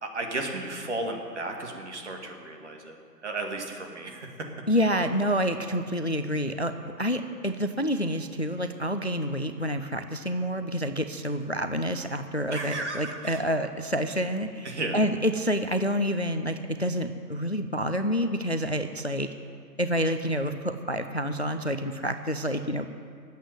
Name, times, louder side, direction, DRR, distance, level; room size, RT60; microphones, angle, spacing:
voice 1, 0.0-3.0 3.2-4.3 12.5-13.4 14.6-15.0, right 2 dB, 45° right, 2 dB, 2.1 m, -34 dB
voice 2, 4.7-19.3 19.8-22.9, equal, 45° left, 8 dB, 0.4 m, -28 dB
12.5 x 8.2 x 9.4 m, 2.1 s
hypercardioid pair, 175°, 49 cm